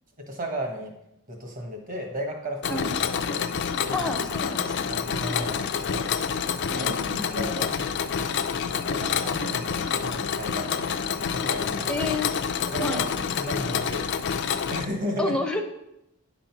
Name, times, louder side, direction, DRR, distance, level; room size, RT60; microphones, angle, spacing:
voice 1, 0.2-0.9 1.3-2.8 3.3-3.5 3.8-4.0 4.9-6.1 6.7-7.9 8.2-8.4 8.9-10.9 11.3-11.9 12.7-13.0 13.4-15.4, equal, 35° right, 3 dB, 1.5 m, -34 dB
Mechanisms, 2.6-14.8, left 6 dB, 50° left, 0.4 m, -28 dB
voice 2, 3.9-4.9 6.7-7.5 11.9-12.3 12.8-13.0 15.2-15.6, left 2 dB, 5° left, 3 dB, 0.6 m, -30 dB
9.6 x 3.9 x 6.0 m, 0.84 s
head